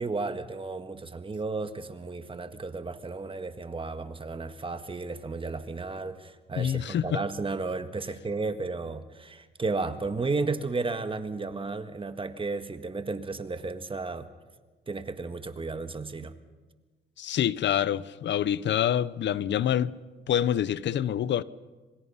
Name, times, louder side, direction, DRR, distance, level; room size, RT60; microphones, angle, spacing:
voice 1, 0.0-14.3 14.9-16.3, right 3 dB, 25° right, 1.6 m, -33 dB
voice 2, 6.6-7.2 17.2-19.9 20.3-21.4, left 10 dB, 65° left, 0.9 m, -26 dB
26.5 x 23.5 x 5.7 m
cardioid pair, 90°, 20 cm